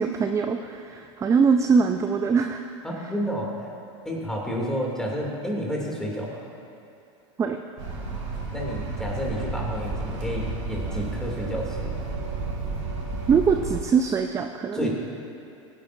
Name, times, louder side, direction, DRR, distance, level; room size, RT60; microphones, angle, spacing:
voice 1, 0.0-2.6 7.4-7.6 13.3-14.9, right 5 dB, 20° right, 6 dB, 0.4 m, -22 dB
voice 2, 2.8-3.5 4.0-6.4 8.1-8.2 8.5-12.0 14.7-14.9, equal, 5° left, -3 dB, 2.6 m, -30 dB
sound 1, 7.8-13.8, right 3 dB, 65° right, 2.5 m, -32 dB
16.5 x 10.0 x 2.6 m, 2.8 s
hypercardioid pair, 100°, 16 cm